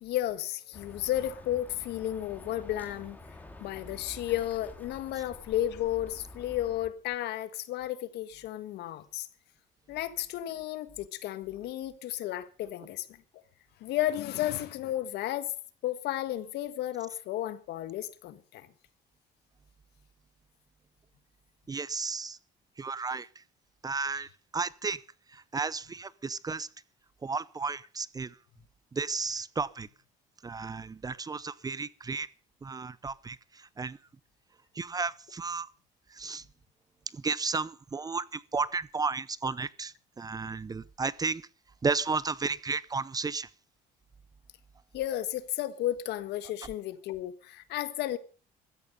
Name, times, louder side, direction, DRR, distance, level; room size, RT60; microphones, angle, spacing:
voice 1, 0.0-3.2 3.6-9.3 9.9-13.2 13.8-15.5 15.8-18.7 44.9-48.2, left 13 dB, 80° left, 1.6 m, -33 dB
Bird, 0.7-6.9, left 1 dB, 10° left, 3.3 m, -48 dB
voice 2, 21.7-22.4 22.8-23.4 23.8-25.0 25.3-26.7 27.2-28.4 28.9-29.9 30.4-32.3 32.6-34.0 34.7-35.7 36.1-36.4 37.1-41.4 41.8-43.5, right 4 dB, 20° right, 0.7 m, -33 dB
16.0 x 13.5 x 5.4 m
cardioid pair, 110°, 17 cm